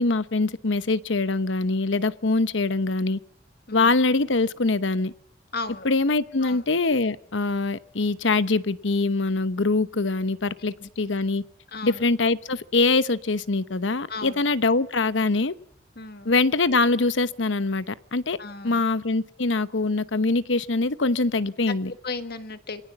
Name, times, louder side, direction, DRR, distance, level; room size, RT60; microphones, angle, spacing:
voice 1, 0.0-3.2 3.7-5.1 5.8-11.4 11.8-15.5 16.2-18.4 18.6-21.9, left 3 dB, 70° left, 1.0 m, -23 dB
voice 2, 5.5-5.9 6.4-6.6 10.8-10.9 11.7-12.0 14.1-14.4 15.9-16.3 18.4-18.8 21.7-21.8 22.0-22.8, left 3 dB, 55° left, 1.6 m, -35 dB
28.0 x 20.0 x 7.2 m
head